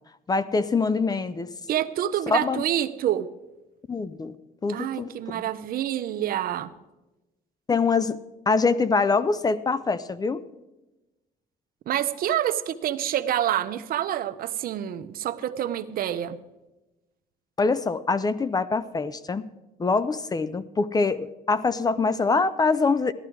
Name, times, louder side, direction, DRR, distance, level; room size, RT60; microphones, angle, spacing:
voice 1, 0.3-1.5 2.3-2.6 3.9-4.4 4.6-5.4 7.7-8.2 8.5-10.4 17.6-19.4 19.8-23.1, left 4 dB, 20° left, 16 dB, 0.5 m, -24 dB
voice 2, 1.7-3.3 4.7-6.7 11.9-16.4, right 11 dB, 60° right, 12 dB, 0.8 m, -27 dB
14.5 x 12.0 x 4.6 m, 1.0 s
cardioid pair, 110°, 17 cm